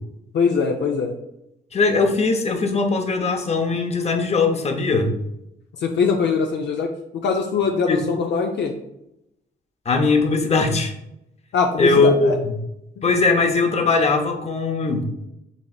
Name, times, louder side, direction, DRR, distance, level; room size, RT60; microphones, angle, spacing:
voice 1, 0.3-1.1 5.8-8.7 11.5-12.3 13.0-13.1, left 5 dB, 60° left, 3 dB, 0.6 m, -22 dB
voice 2, 1.7-5.1 7.9-8.0 9.9-10.9 11.8-12.5 13.0-15.0, left 3 dB, 30° left, 5 dB, 0.8 m, -20 dB
7.1 x 3.1 x 2.4 m, 0.85 s
cardioid pair, 90°, 20 cm